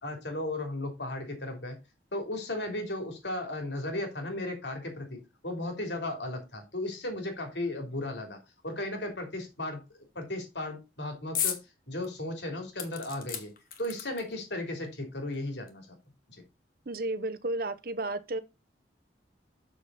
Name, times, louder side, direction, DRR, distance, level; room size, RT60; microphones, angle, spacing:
voice 1, 0.0-1.8 2.1-8.4 8.6-11.6 11.9-13.5 13.8-15.9, left 1 dB, 80° left, 3.2 m, -35 dB
sound 1, 11.4-11.6 12.0-12.1 12.8-14.4 15.3-15.4 15.7-15.8, left 8 dB, 50° left, 1.5 m, -34 dB
voice 2, 16.9-18.4, right 2 dB, 55° right, 0.8 m, -32 dB
7.1 x 6.6 x 4.1 m
head